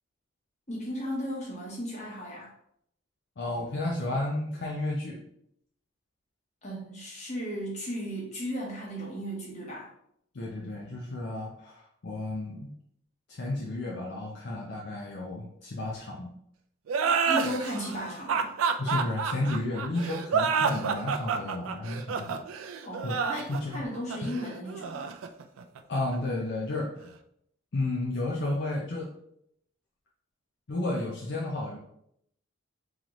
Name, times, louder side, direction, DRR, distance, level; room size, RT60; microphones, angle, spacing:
voice 1, 0.7-2.5 6.6-9.9 17.0-18.5 22.8-25.1, equal, 35° left, -4 dB, 1.2 m, -35 dB
voice 2, 3.4-5.2 10.3-12.7 13.3-16.3 18.8-22.4 23.0-23.2 23.5-23.8 24.2-24.3 25.9-27.1 27.7-29.1 30.7-31.8, left 2 dB, 55° left, -3 dB, 0.5 m, -32 dB
sound 1, 16.9-26.2, right 6 dB, 90° right, 0.4 m, -29 dB
3.8 x 3.1 x 3.0 m, 0.72 s
head